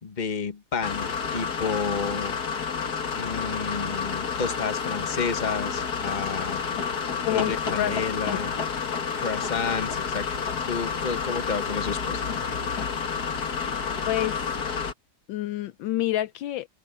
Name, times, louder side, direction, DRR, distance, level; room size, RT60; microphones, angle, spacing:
voice 1, 0.0-2.4 3.2-6.6 7.3-8.5 9.1-12.4, left 5 dB, 25° left, 1.3 m, -31 dB
sound 1, 0.8-14.9, left 6 dB, 50° left, 2.2 m, -30 dB
voice 2, 7.3-8.0 8.3-8.4 14.1-14.5 15.3-16.7, left 13 dB, 75° left, 1.3 m, -28 dB
open air
omnidirectional pair, 2.2 m